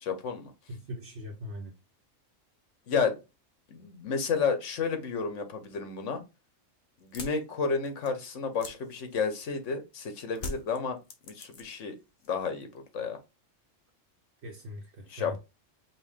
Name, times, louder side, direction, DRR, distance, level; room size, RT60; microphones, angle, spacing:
voice 1, 0.0-0.5 2.9-3.2 3.7-6.2 7.0-11.0 11.3-12.0 12.3-13.2 15.1-15.4, left 5 dB, 70° left, 1.3 m, -31 dB
voice 2, 0.7-1.7 14.4-15.4, left 1 dB, 65° right, 1.1 m, -41 dB
sound 1, 7.0-9.7 10.3-11.9 12.2-12.8, left 2 dB, 40° left, 1.0 m, -43 dB
5.4 x 2.4 x 3.6 m
omnidirectional pair, 1.3 m